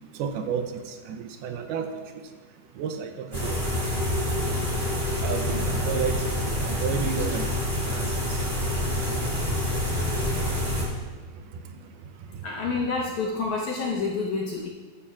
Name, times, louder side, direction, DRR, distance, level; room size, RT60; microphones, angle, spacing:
voice 1, 0.2-1.9 2.8-3.6 5.2-7.5 7.9-8.1, right 7 dB, 80° right, 6 dB, 2.6 m, -31 dB
sound 1, 3.3-10.8, left 1 dB, 20° right, 1.6 m, -27 dB
voice 2, 12.4-14.7, left 4 dB, 70° left, -3 dB, 2.0 m, -28 dB
14.5 x 11.0 x 2.4 m, 1.4 s
omnidirectional pair, 4.5 m